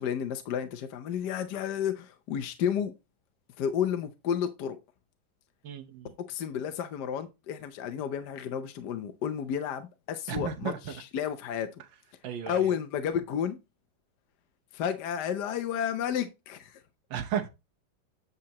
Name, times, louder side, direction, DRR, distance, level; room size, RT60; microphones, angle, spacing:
voice 1, 0.0-2.9 3.6-4.8 6.3-11.7 12.5-13.6 14.7-16.8, left 8 dB, 65° left, 1.2 m, -31 dB
voice 2, 5.6-6.1 10.3-11.0 12.2-12.7 17.1-17.5, right 8 dB, 70° right, 1.6 m, -34 dB
8.5 x 6.5 x 2.9 m
omnidirectional pair, 2.2 m